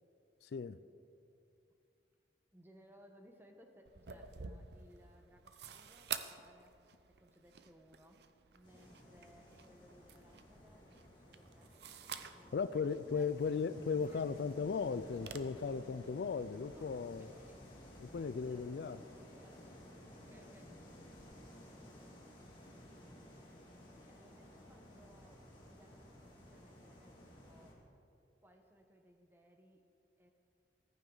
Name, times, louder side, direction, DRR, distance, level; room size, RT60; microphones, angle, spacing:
voice 1, 0.4-0.8 12.5-17.3 18.0-19.0, left 5 dB, 65° left, 0.4 m, -37 dB
voice 2, 2.5-8.2 8.5-11.8 12.3-12.7 13.1-13.4 14.0-14.4 16.8-16.9 17.2-17.6 18.0-19.8 20.1-21.0 23.8-27.8 28.4-29.9 30.2-30.3, equal, 15° right, 1.1 m, -64 dB
sound 1, 3.8-15.4, right 8 dB, 65° right, 0.7 m, -50 dB
sound 2, 8.6-27.7, left 1 dB, 30° left, 2.3 m, -56 dB
14.5 x 14.5 x 3.9 m
head